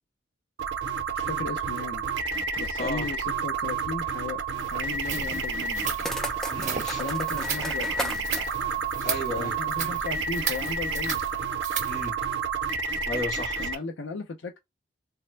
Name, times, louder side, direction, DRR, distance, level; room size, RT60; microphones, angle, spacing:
sound 1, 0.6-13.7, right 5 dB, 75° right, 0.6 m, -30 dB
voice 1, 1.1-4.4 4.7-5.9 7.0-8.3 9.4-11.2 13.6-14.6, left 4 dB, 75° left, 0.5 m, -36 dB
sound 2, 4.6-12.1, right 7 dB, 40° right, 0.7 m, -36 dB
sound 3, 5.6-9.8, equal, 5° left, 0.4 m, -37 dB
voice 2, 6.5-7.0 9.0-9.6 11.9-12.2 13.1-13.8, left 1 dB, 40° left, 1.4 m, -33 dB
3.4 x 2.1 x 3.1 m
head